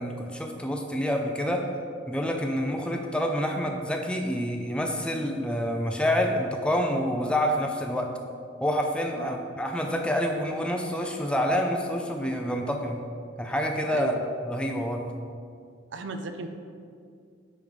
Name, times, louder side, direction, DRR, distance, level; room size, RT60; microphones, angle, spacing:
voice 1, 0.0-1.7 2.1-8.1 8.6-13.0 13.4-15.1, equal, 5° left, 3 dB, 0.4 m, -27 dB
voice 2, 13.9-14.2 15.9-16.5, right 3 dB, 65° right, 7 dB, 0.5 m, -35 dB
8.6 x 3.1 x 5.3 m, 2.2 s
head